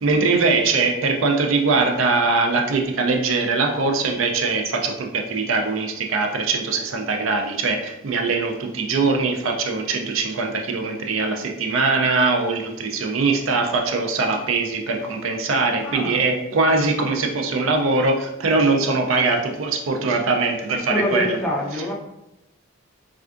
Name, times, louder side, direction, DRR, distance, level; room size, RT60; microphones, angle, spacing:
voice 1, 0.0-21.4, right 3 dB, 75° right, 3 dB, 0.4 m, -22 dB
voice 2, 15.8-16.3 20.7-21.9, left 1 dB, 5° left, -4 dB, 0.4 m, -26 dB
3.4 x 2.4 x 2.4 m, 0.88 s
head